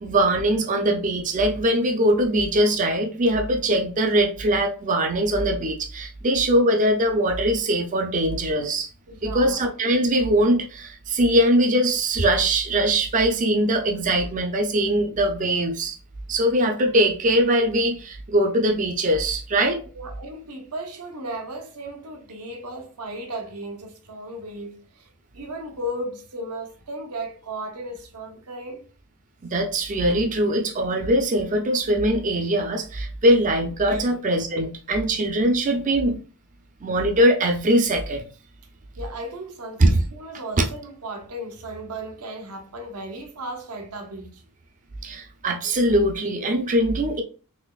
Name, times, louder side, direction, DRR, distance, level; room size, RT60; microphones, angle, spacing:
voice 1, 0.0-8.9 9.2-16.0 16.3-19.8 29.5-36.2 36.8-38.2 39.8-39.9 45.0-47.2, right 1 dB, 35° right, 0.5 m, -21 dB
voice 2, 9.1-9.6 19.9-25.1 25.3-28.9 33.9-34.1 34.6-34.7 39.0-44.4, right 1 dB, 85° right, 0.9 m, -35 dB
4.2 x 2.9 x 2.4 m
head